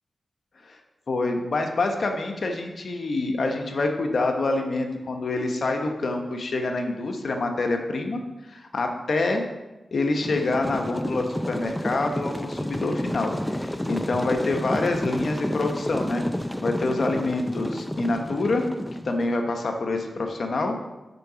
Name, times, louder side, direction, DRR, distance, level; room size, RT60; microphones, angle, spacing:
voice 1, 1.1-8.2 8.5-9.4 9.9-16.2 16.6-18.6 18.9-20.8, left 2 dB, 70° left, 4 dB, 1.1 m, -26 dB
sound 1, 10.2-19.3, equal, 10° left, 0.6 m, -30 dB
6.8 x 5.8 x 6.9 m, 1.1 s
cardioid pair, 45°, 0 cm